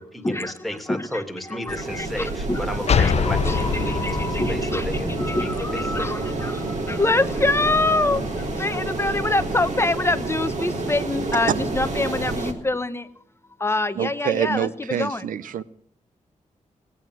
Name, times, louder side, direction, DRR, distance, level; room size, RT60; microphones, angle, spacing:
voice 1, 0.0-5.1 5.4-6.1, left 1 dB, ahead, 2.2 m, -34 dB
voice 2, 0.9-1.2 1.6-2.1 2.5-2.6 3.0-3.1 3.4-4.9 5.2-6.5 6.9-8.2 8.6-13.0 13.6-15.2, left 2 dB, 20° left, 1.0 m, -25 dB
sound 1, 1.7-12.5, right 2 dB, 65° right, 3.6 m, -28 dB
sound 2, 2.9-6.4, left 7 dB, 50° left, 0.7 m, -25 dB
voice 3, 14.0-15.6, right 9 dB, 90° right, 0.6 m, -26 dB
18.5 x 9.3 x 7.7 m
cardioid pair, 100°, 13 cm